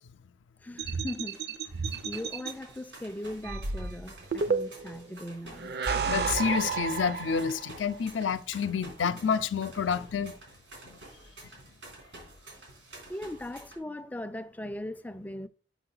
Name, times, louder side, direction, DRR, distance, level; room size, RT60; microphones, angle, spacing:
voice 1, 0.6-1.4 2.0-5.8 13.1-15.5, left 1 dB, 10° left, 0.3 m, -39 dB
sound 1, 0.8-2.5 3.4-5.0 5.6-7.8, right 5 dB, 60° right, 0.6 m, -31 dB
sound 2, 1.1-13.8, right 2 dB, 85° right, 3.6 m, -50 dB
voice 2, 6.0-10.3 10.8-11.0, left 6 dB, 90° left, 0.5 m, -29 dB
6.2 x 6.0 x 3.9 m
head